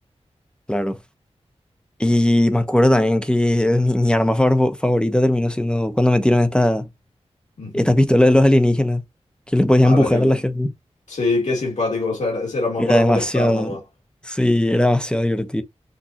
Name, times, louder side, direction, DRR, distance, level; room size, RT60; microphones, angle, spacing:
voice 1, 0.7-1.0 2.0-6.9 7.7-9.0 9.5-10.7 12.8-13.7 14.2-15.6, left 1 dB, 10° left, 0.9 m, -18 dB
voice 2, 9.8-10.4 11.1-13.8, left 2 dB, 90° left, 2.5 m, -24 dB
6.4 x 2.6 x 2.8 m
wide cardioid pair, 75°, 12 cm